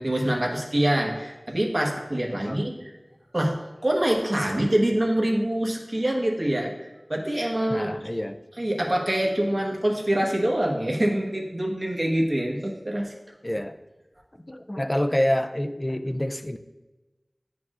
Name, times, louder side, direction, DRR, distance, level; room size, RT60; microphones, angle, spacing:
voice 1, 0.0-2.9 3.3-6.7 7.1-7.9 8.6-13.1 13.5-13.6, right 1 dB, 45° right, 0 dB, 1.2 m, -25 dB
voice 2, 7.7-8.4 13.4-13.8 14.5-16.6, left 1 dB, 35° left, 7 dB, 0.4 m, -27 dB
11.0 x 4.7 x 2.5 m, 1.1 s
wide cardioid pair, 40°, 0 cm